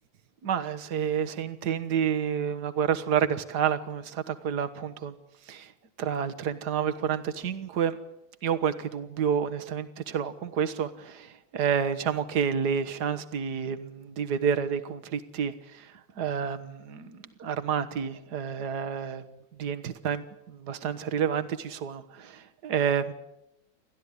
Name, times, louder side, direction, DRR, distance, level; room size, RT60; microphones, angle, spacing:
voice 1, 0.4-5.1 5.4-5.7 6.0-8.0 8.4-19.3 19.6-23.1, right 7 dB, 55° right, 10 dB, 1.7 m, -29 dB
29.5 x 12.5 x 9.7 m, 0.86 s
omnidirectional pair, 2.3 m